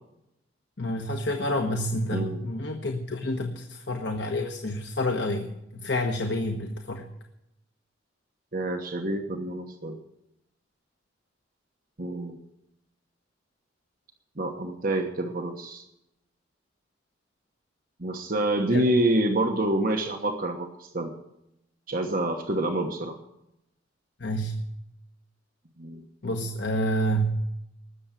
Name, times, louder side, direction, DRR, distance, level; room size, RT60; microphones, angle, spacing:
voice 1, 0.8-7.1 18.7-18.8 24.2-24.6 26.2-27.4, equal, 65° left, 3 dB, 1.3 m, -28 dB
voice 2, 2.1-2.4 8.5-10.0 12.0-12.4 14.4-15.8 18.0-21.1 21.9-23.2 25.8-26.0, right 1 dB, 50° right, 3 dB, 1.2 m, -27 dB
19.5 x 7.1 x 8.9 m, 0.85 s
head